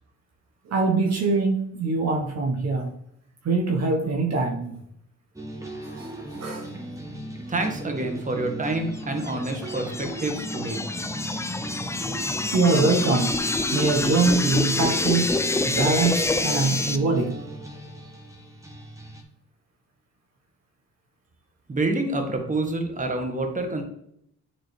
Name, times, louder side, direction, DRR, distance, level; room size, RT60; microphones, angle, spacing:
voice 1, 0.7-2.9 3.4-4.8 6.0-6.7 11.8-12.0 12.5-13.3 13.7-15.4 15.6-17.4, right 3 dB, 60° right, 2 dB, 1.2 m, -23 dB
sound 1, 5.4-19.2, equal, 10° right, 1.3 m, -37 dB
voice 2, 7.5-10.8 21.7-23.8, right 2 dB, 25° right, 4 dB, 1.5 m, -27 dB
sound 2, 9.0-17.0, left 2 dB, 10° left, 0.4 m, -27 dB
9.2 x 3.9 x 3.3 m, 0.72 s
cardioid pair, 90°, 30 cm